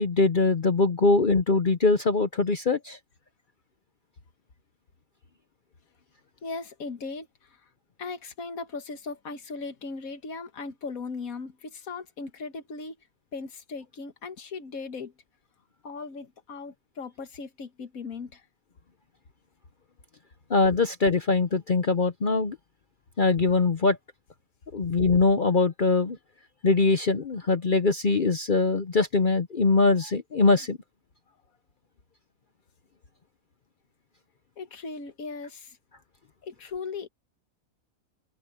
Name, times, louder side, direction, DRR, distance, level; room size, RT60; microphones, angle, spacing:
voice 1, 0.0-3.0 20.5-22.6 23.2-24.0 24.7-26.2 26.6-30.8, left 3 dB, 45° left, 0.9 m, -22 dB
voice 2, 6.4-7.7 8.0-13.0 13.3-15.1 15.8-18.4 34.6-35.8 36.4-37.1, left 4 dB, 85° left, 1.9 m, -38 dB
omnidirectional pair, 1.4 m